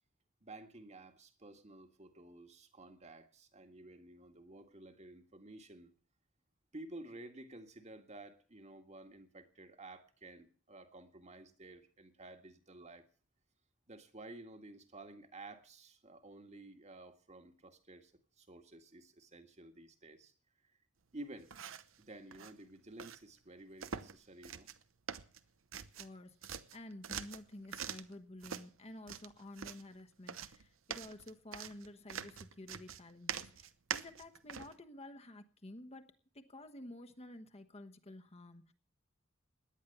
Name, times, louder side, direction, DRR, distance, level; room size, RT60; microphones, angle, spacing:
voice 1, 0.4-5.9 6.7-13.1 13.9-18.1 18.4-20.3 21.1-21.5 22.0-24.7, right 2 dB, 35° right, 7 dB, 1.8 m, -53 dB
sound 1, 21.4-22.0 22.3-22.5 23.0-23.2 23.8-24.2 24.4-24.8 25.1-26.2 26.4-28.1 28.4-28.7 29.1-29.9 30.3-34.7, right 7 dB, 75° right, 0.9 m, -44 dB
voice 2, 25.7-38.7, left 1 dB, 30° left, 7 dB, 1.2 m, -52 dB
18.0 x 10.5 x 6.9 m, 0.41 s
head